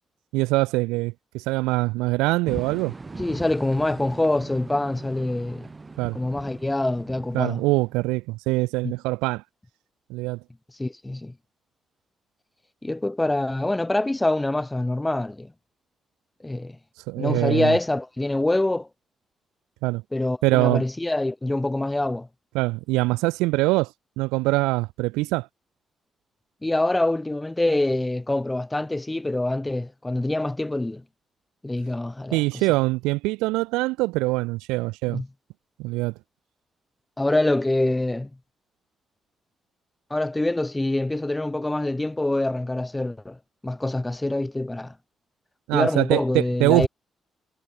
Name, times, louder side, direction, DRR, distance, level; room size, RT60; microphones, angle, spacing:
voice 1, 0.3-2.9 6.0-6.2 7.3-9.4 10.1-10.4 17.1-17.8 19.8-20.0 20.4-20.8 22.5-23.9 24.2-25.5 32.3-35.2 35.8-36.1 45.7-46.9, right 22 dB, 80° right, 0.7 m, -23 dB
sound 1, 2.5-8.1, right 3 dB, 35° right, 6.3 m, -39 dB
voice 2, 3.2-5.7 6.1-7.6 8.8-8.9 10.8-11.3 12.8-15.5 16.4-16.8 17.2-18.9 20.1-22.3 26.6-31.0 31.6-32.4 35.1-35.3 37.2-38.3 40.1-43.4 43.6-44.9 45.7-46.9, left 2 dB, 15° left, 0.7 m, -25 dB
hypercardioid pair, 40°, 0 cm